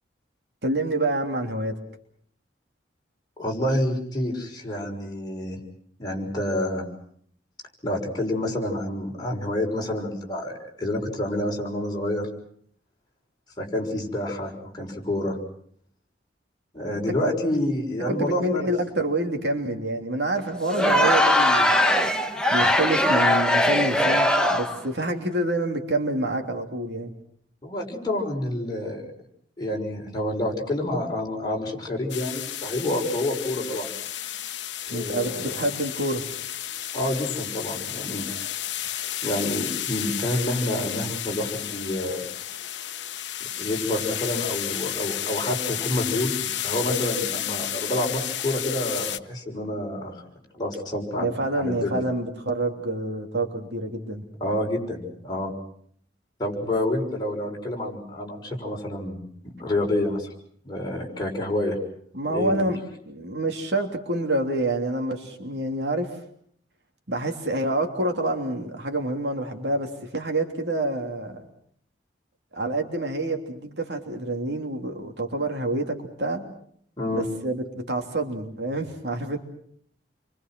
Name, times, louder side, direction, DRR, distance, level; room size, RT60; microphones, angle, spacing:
voice 1, 0.6-1.8 18.1-21.7 22.5-27.1 34.9-36.2 51.2-54.2 62.1-66.2 67.1-71.4 72.5-76.5 77.1-79.4, right 2 dB, 65° right, 4 dB, 3.1 m, -27 dB
voice 2, 3.4-5.6 6.0-6.9 7.8-12.3 13.6-15.4 16.7-18.7 27.6-29.0 29.6-33.9 34.9-35.6 36.9-38.4 39.2-42.3 43.6-50.2 50.5-52.0 54.4-55.5 56.4-60.3 60.6-61.8 62.3-62.7 77.0-77.3, left 1 dB, 25° left, -1 dB, 6.2 m, -28 dB
Crowd, 20.7-24.8, left 1 dB, 5° left, 1.5 m, -20 dB
sound 1, 32.1-49.2, left 11 dB, 75° left, 1.0 m, -32 dB
29.0 x 24.5 x 6.1 m, 0.63 s
head